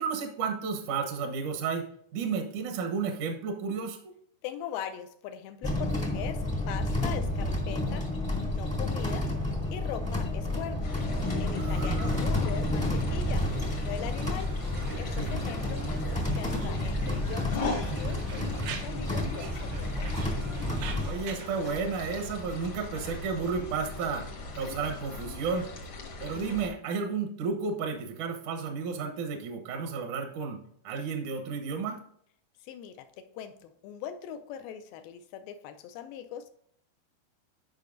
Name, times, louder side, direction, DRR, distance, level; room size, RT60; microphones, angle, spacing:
voice 1, 0.0-1.8 2.1-4.1 11.6-12.2 15.2-15.5 21.1-24.2 24.5-25.7 26.2-30.6 30.8-32.0, right 5 dB, 70° right, 5 dB, 1.9 m, -32 dB
voice 2, 4.4-8.1 8.5-9.3 9.7-10.9 11.4-13.5 13.8-14.6 15.0-20.1 32.6-36.5, left 9 dB, 85° left, 8 dB, 2.1 m, -41 dB
sound 1, 5.6-21.1, left 1 dB, 5° left, 0.5 m, -30 dB
sound 2, 10.8-26.7, left 3 dB, 65° left, 1.3 m, -39 dB
Conversation, 13.2-21.8, right 7 dB, 90° right, 1.6 m, -46 dB
10.5 x 5.6 x 2.5 m, 0.66 s
omnidirectional pair, 4.6 m